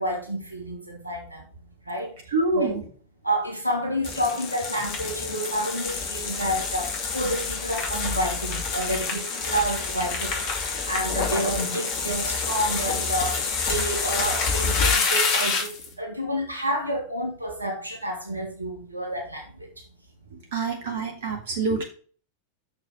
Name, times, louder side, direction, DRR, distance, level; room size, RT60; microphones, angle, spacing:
voice 1, 0.0-1.4 1.9-2.1 2.5-2.8 3.2-10.3 10.9-15.7 16.0-19.7, equal, 85° right, 2.1 m, -29 dB
voice 2, 2.3-2.8 20.5-21.8, right 3 dB, 55° right, 1.9 m, -26 dB
sound 1, 4.0-15.9, left 4 dB, 40° left, 2.7 m, -27 dB
6.5 x 6.0 x 6.1 m
figure-of-eight pair, 90°, 0 cm